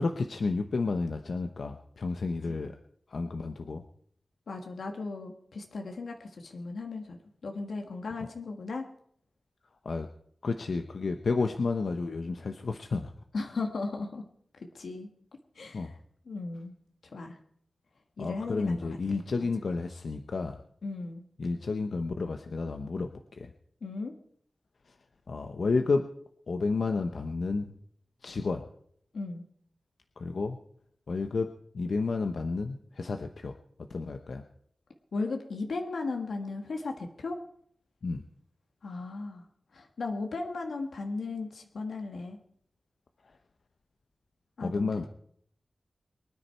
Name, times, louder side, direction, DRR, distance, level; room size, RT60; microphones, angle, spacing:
voice 1, 0.0-2.8 3.1-3.8 9.8-10.1 10.4-13.1 15.7-15.9 18.2-20.6 21.4-23.5 25.3-26.1 26.5-27.6 28.2-28.6 30.2-30.6 31.1-34.4 38.0-38.2 44.6-45.1, left 4 dB, 70° left, 6 dB, 0.8 m, -31 dB
voice 2, 4.5-8.9 13.3-14.2 14.6-15.1 15.5-15.9 16.3-16.7 17.1-17.4 18.2-19.0 20.8-21.2 23.8-24.1 29.1-29.5 35.1-37.4 38.8-39.4 39.7-42.4 44.6-45.1, left 3 dB, 90° left, 3 dB, 1.5 m, -36 dB
23.5 x 9.9 x 4.5 m, 0.66 s
wide cardioid pair, 110°, 0 cm